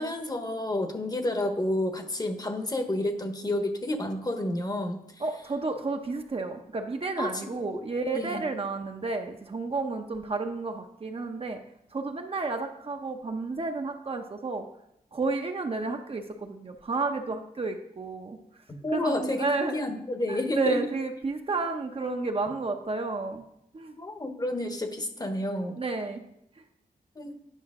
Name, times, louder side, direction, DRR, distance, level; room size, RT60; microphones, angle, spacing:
voice 1, 0.0-5.0 7.2-7.8 8.1-8.4 18.8-20.8 24.0-25.8 27.2-27.3, left 1 dB, 25° left, 6 dB, 1.0 m, -30 dB
voice 2, 5.2-11.6 11.9-14.7 15.1-18.4 18.9-19.8 20.3-23.5 23.7-23.9 25.8-26.2, right 3 dB, 40° right, 4 dB, 0.8 m, -31 dB
9.9 x 5.6 x 3.6 m, 0.79 s
wide cardioid pair, 90°, 15 cm